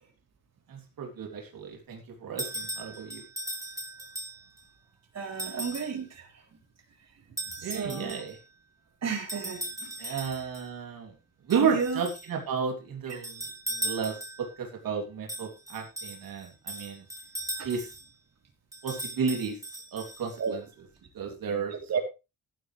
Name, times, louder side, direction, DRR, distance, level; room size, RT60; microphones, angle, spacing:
voice 1, 0.7-3.2 7.6-8.4 10.0-11.1 11.5-13.4 13.7-17.0 17.6-17.9 18.8-19.6 19.9-20.6 21.1-22.0, right 6 dB, 80° right, 1 dB, 3.2 m, -32 dB
sound 1, 2.4-4.6 5.4-6.0 7.4-8.4 9.3-10.7 11.5-12.3 13.1-14.5 15.3-18.1 18.7-20.5, right 1 dB, 10° right, 3.6 m, -38 dB
voice 2, 5.1-6.3 7.6-8.1 9.0-10.2 11.5-12.0 13.1-13.2 17.6-17.7 20.4-20.5 21.2-21.3 21.7-22.0, right 6 dB, 50° right, 2 dB, 3.6 m, -33 dB
15.0 x 11.5 x 3.3 m, 0.28 s
wide cardioid pair, 155°, 34 cm